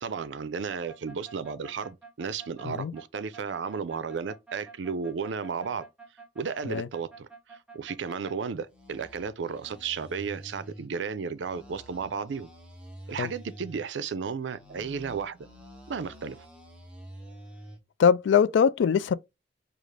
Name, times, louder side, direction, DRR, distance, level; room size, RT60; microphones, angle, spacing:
voice 1, 0.0-5.8 6.4-12.5 13.1-15.4 15.9-16.4, right 5 dB, 75° right, 0.4 m, -34 dB
sound 1, 0.7-8.4 8.7-10.9 11.4-13.9 14.4-17.8, right 2 dB, 5° right, 1.0 m, -48 dB
voice 2, 18.0-19.1, left 7 dB, 75° left, 0.3 m, -22 dB
5.0 x 2.4 x 3.2 m
head